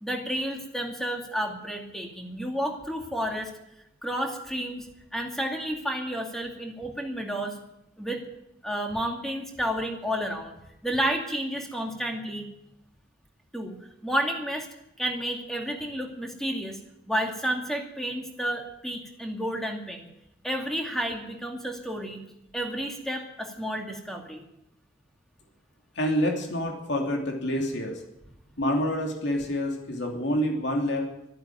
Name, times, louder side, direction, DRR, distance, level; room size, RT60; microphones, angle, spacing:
voice 1, 0.0-3.5 4.0-4.9 5.1-7.5 8.0-8.2 8.6-12.5 13.5-13.8 14.0-14.7 15.0-16.8 17.1-20.1 20.4-22.2 22.5-24.4, equal, ahead, 2 dB, 2.3 m, -31 dB
voice 2, 26.0-28.0 28.6-31.0, equal, 65° left, 2 dB, 2.9 m, -27 dB
13.0 x 10.5 x 9.1 m, 0.83 s
head